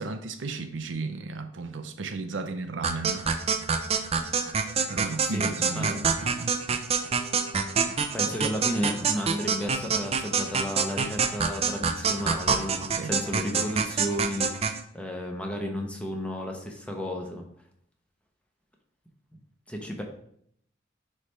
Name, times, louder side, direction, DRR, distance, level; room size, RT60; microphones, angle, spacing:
voice 1, 0.0-3.3 4.9-6.6 12.9-13.1, right 3 dB, 85° right, 0.6 m, -34 dB
sound 1, 2.8-14.8, right 5 dB, 35° right, 0.4 m, -27 dB
Wind instrument woodwind instrument, 3.0-12.1, left 1 dB, 40° left, 2.4 m, -53 dB
voice 2, 5.2-6.1 8.1-14.7 14.9-17.4 19.7-20.0, equal, 5° left, 0.8 m, -33 dB
9.6 x 3.3 x 3.3 m
head